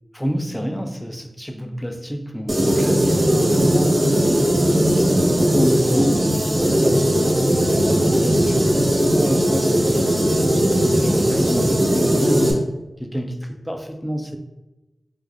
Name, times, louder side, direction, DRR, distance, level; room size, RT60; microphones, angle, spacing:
voice 1, 0.1-10.2 10.6-12.7 13.0-14.4, equal, 5° left, 5 dB, 0.4 m, -28 dB
sound 1, 2.5-12.5, equal, 35° right, 0.6 m, -18 dB
2.4 x 2.2 x 3.2 m, 1.0 s
cardioid pair, 45°, 0 cm